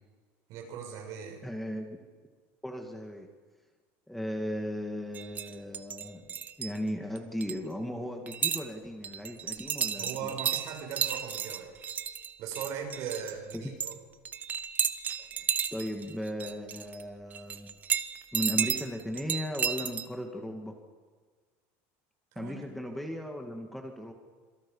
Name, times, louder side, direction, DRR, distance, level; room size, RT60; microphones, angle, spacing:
voice 1, 0.5-1.4 10.0-11.7 12.4-13.9 22.3-22.6, right 7 dB, 55° right, 2 dB, 6.9 m, -39 dB
voice 2, 1.4-2.0 2.6-3.3 4.1-10.3 13.5-13.7 15.2-15.3 15.7-17.8 18.3-20.8 22.4-24.1, equal, 5° left, 3 dB, 2.0 m, -36 dB
sound 1, 5.1-6.8 7.2-7.6 8.3-8.7 9.0-13.9 14.3-17.0 17.3-20.1, right 8 dB, 25° right, 1.0 m, -33 dB
26.5 x 23.0 x 5.6 m, 1.5 s
cardioid pair, 155°, 7 cm